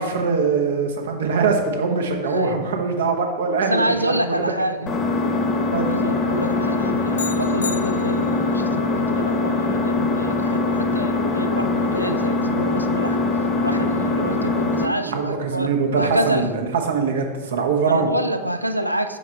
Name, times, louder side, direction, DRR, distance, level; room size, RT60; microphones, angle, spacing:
voice 1, 0.0-4.5 4.8-4.9 5.7-5.9 15.1-18.1, right 5 dB, 60° right, 3 dB, 0.9 m, -22 dB
voice 2, 2.2-2.6 3.7-4.9 5.8-13.2 13.6-16.5 17.9-19.2, right 1 dB, 85° right, 9 dB, 0.4 m, -27 dB
Engine, 4.9-14.9, left 3 dB, 25° left, 0.9 m, -22 dB
sound 1, 7.1-8.6, left 5 dB, 75° left, 0.4 m, -33 dB
6.2 x 4.6 x 4.4 m, 1.4 s
figure-of-eight pair, 90°, 0 cm